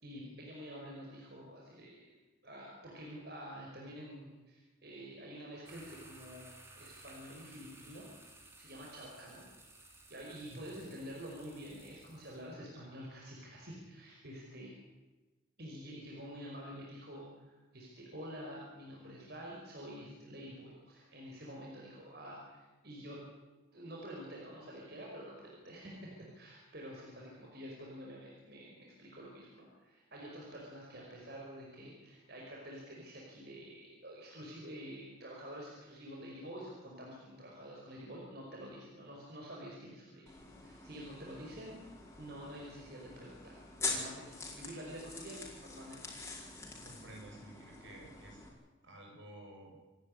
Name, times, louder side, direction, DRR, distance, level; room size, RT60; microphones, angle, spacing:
voice 1, 0.0-2.2 2.4-8.1 8.6-9.4 10.1-14.8 15.6-23.2 23.7-40.3 40.6-41.8 42.2-46.0, equal, 50° right, -3 dB, 5.3 m, -48 dB
sound 1, 5.7-12.5, right 2 dB, 15° right, 3.2 m, -57 dB
voice 2, 10.5-10.8 46.8-48.5 48.8-49.7, right 1 dB, 70° right, 0 dB, 7.2 m, -52 dB
sound 2, 40.3-48.5, left 3 dB, 15° left, 4.9 m, -44 dB
27.5 x 12.0 x 9.9 m, 1.2 s
head